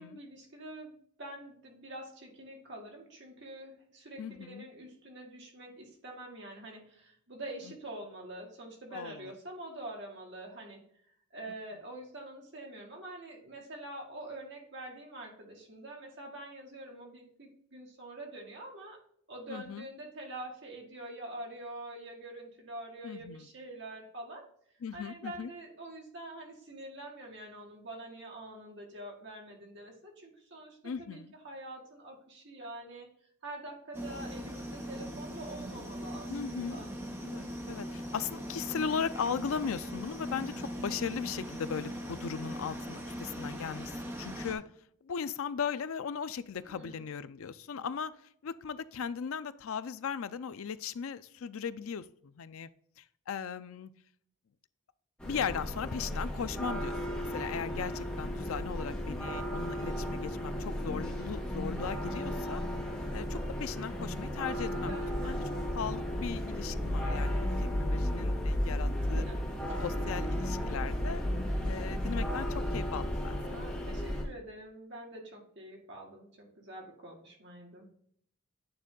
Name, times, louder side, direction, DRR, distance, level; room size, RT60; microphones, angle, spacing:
voice 1, 0.0-10.8 11.3-19.0 19.3-24.5 24.9-33.1 33.4-36.9 46.6-47.1 47.7-47.9 58.7-59.1 64.7-65.7 68.7-69.4 69.7-69.8 70.2-71.0 73.5-77.9, right 1 dB, 55° right, -1 dB, 1.9 m, -46 dB
voice 2, 4.2-4.6 8.9-9.3 19.5-19.8 23.0-23.4 24.8-25.5 30.8-31.3 36.3-36.9 37.2-43.9 44.2-44.6 45.0-48.1 48.4-52.7 53.0-53.9 55.2-62.6 63.1-64.9 65.2-65.4 65.7-69.2 69.8-71.2 71.7-73.4, left 6 dB, 75° left, 14 dB, 0.4 m, -37 dB
sound 1, 33.9-44.5, equal, 10° right, 0.8 m, -40 dB
sound 2, 55.2-74.2, equal, 5° left, 1.7 m, -34 dB
8.9 x 3.5 x 3.8 m, 0.64 s
head